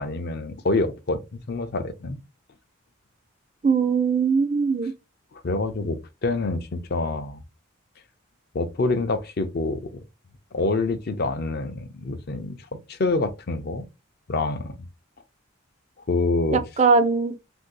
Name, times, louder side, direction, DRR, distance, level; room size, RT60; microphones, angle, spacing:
voice 1, 0.0-2.2 5.3-7.4 8.5-9.9 10.5-12.6 12.9-13.8 14.3-14.8 16.1-16.6, left 3 dB, 50° left, 0.5 m, -26 dB
voice 2, 3.6-4.9 16.5-17.3, right 5 dB, 30° right, 0.4 m, -20 dB
2.7 x 2.6 x 3.8 m
head